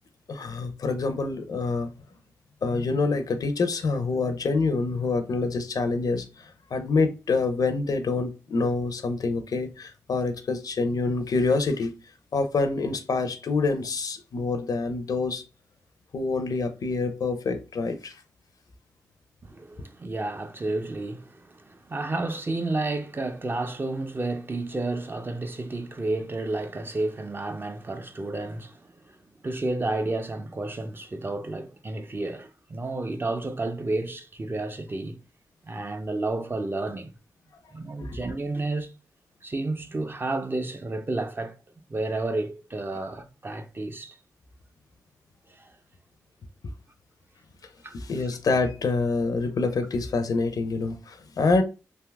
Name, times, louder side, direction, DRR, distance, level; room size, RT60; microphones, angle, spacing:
voice 1, 0.3-1.9 2.6-11.9 12.3-15.4 16.1-18.1 38.0-38.1 47.9-51.6, left 3 dB, 70° left, 0.5 m, -26 dB
voice 2, 19.4-29.2 29.4-35.2 35.6-37.1 37.7-38.9 39.4-41.6 41.9-44.2 45.5-45.7 47.8-48.4, right 2 dB, 35° right, 0.5 m, -31 dB
3.4 x 2.7 x 2.3 m
supercardioid pair, 40°, 7 cm